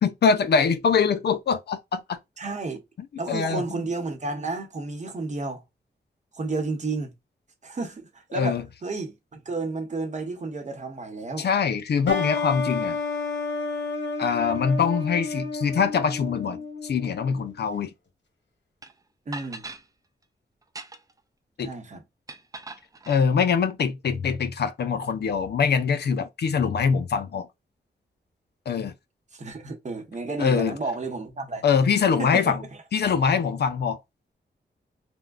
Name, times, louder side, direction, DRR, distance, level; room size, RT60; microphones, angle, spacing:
voice 1, 0.0-2.2 3.3-3.6 8.3-8.6 11.4-13.0 14.2-17.9 21.6-21.7 23.1-27.5 28.7-28.9 30.4-30.8 31.6-32.6 32.9-34.0, left 6 dB, 65° left, 0.5 m, -23 dB
voice 2, 2.4-2.8 3.2-5.6 6.3-7.1 7.6-11.5 19.3-19.7 21.6-22.0 29.3-31.6 32.2-32.6, right 3 dB, 40° right, 0.9 m, -32 dB
sound 1, 12.1-17.5, left 3 dB, 85° left, 1.0 m, -31 dB
sound 2, 18.8-18.9 19.3-19.8 20.6-21.2 22.3-23.2, right 3 dB, 20° right, 0.3 m, -40 dB
3.5 x 2.1 x 2.3 m
wide cardioid pair, 120°, 18 cm